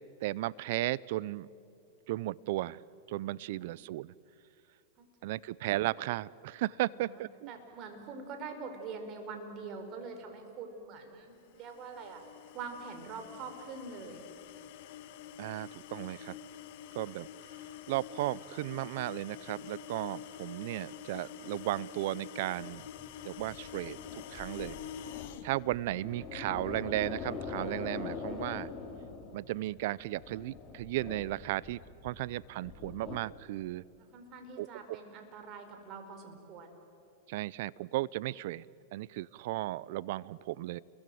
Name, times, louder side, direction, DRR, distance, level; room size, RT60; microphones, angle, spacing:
voice 1, 0.2-1.5 2.1-2.8 3.1-4.1 5.2-7.5 15.4-16.4 16.9-17.3 17.9-22.8 23.2-24.8 25.4-28.7 29.3-33.8 34.6-34.7 37.3-38.7 38.9-40.8, right 16 dB, 65° right, 22 dB, 0.6 m, -35 dB
voice 2, 3.4-3.9 5.2-5.3 6.8-7.2 7.5-12.2 12.5-14.2 34.1-36.7, right 4 dB, 40° right, 6 dB, 4.8 m, -44 dB
sound 1, 11.5-25.5, left 9 dB, 60° left, 1.5 m, -47 dB
sound 2, 22.6-33.2, left 5 dB, 30° left, 3.5 m, -43 dB
30.0 x 22.5 x 7.9 m, 2.5 s
hypercardioid pair, 120°, 0 cm